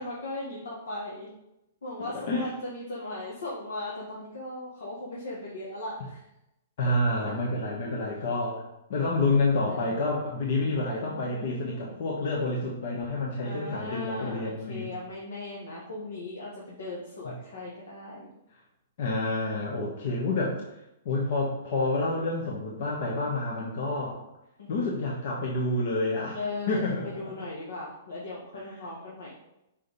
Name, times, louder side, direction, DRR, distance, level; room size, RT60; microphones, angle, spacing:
voice 1, 0.0-1.3 1.8-6.2 7.8-8.0 9.6-9.8 10.8-12.1 13.4-18.3 24.6-24.9 26.3-29.3, left 2 dB, 90° left, -5 dB, 1.7 m, -38 dB
voice 2, 2.0-2.5 6.8-8.6 8.9-14.9 17.2-17.3 19.0-20.6 21.0-24.2 24.7-26.4 26.7-27.1 28.5-28.6, left 2 dB, 60° left, -2 dB, 1.3 m, -28 dB
5.6 x 5.1 x 4.1 m, 0.88 s
hypercardioid pair, 145°, 0 cm